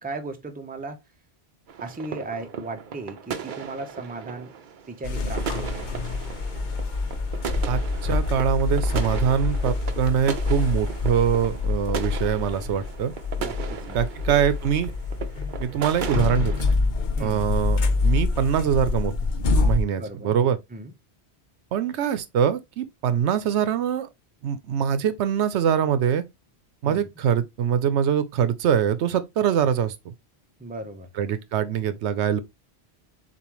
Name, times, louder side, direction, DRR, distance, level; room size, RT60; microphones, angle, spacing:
voice 1, 0.0-1.0 1.8-4.5 4.9-5.9 13.4-14.0 17.2-17.5 20.0-20.3 20.7-20.9 26.8-27.1 30.6-31.1, right 2 dB, 10° right, 0.6 m, -36 dB
sound 1, 1.7-16.7, right 7 dB, 55° right, 0.7 m, -37 dB
sound 2, 5.0-19.8, left 3 dB, 50° left, 0.8 m, -26 dB
voice 2, 7.7-13.1 13.9-14.9 15.6-16.5 17.2-19.1 19.6-20.6 21.7-24.1 24.4-26.2 26.8-30.1 31.2-32.4, right 8 dB, 85° right, 0.9 m, -23 dB
6.9 x 2.5 x 3.0 m
omnidirectional pair, 1.1 m